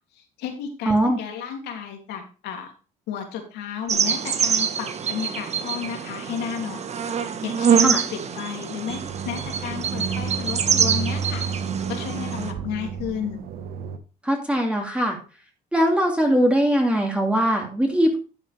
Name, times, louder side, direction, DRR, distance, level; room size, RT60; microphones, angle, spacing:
voice 1, 0.1-2.7 3.1-6.8 7.1-11.4 11.9-13.4, left 8 dB, 85° left, 4 dB, 2.8 m, -33 dB
voice 2, 0.9-1.2 7.8-8.0 14.2-15.2 15.7-18.2, equal, 5° right, 1 dB, 2.5 m, -21 dB
sound 1, 3.9-12.5, right 7 dB, 40° right, 1.4 m, -25 dB
sound 2, 8.9-14.0, right 6 dB, 65° right, 1.4 m, -31 dB
11.5 x 7.6 x 3.4 m, 0.35 s
cardioid pair, 110°, 17 cm